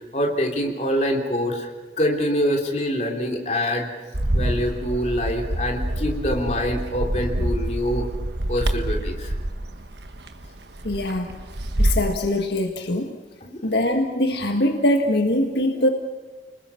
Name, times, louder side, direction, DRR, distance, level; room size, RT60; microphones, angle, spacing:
voice 1, 0.1-1.7 2.0-3.9 4.3-8.1 8.5-9.3 13.4-13.6, equal, 40° left, 1 dB, 3.5 m, -25 dB
Bird, 4.1-12.1, right 1 dB, 70° right, 1.3 m, -26 dB
voice 2, 10.8-11.4 11.8-13.2 13.6-15.9, left 1 dB, 70° left, 3 dB, 1.6 m, -22 dB
30.0 x 20.5 x 5.8 m, 1.4 s
head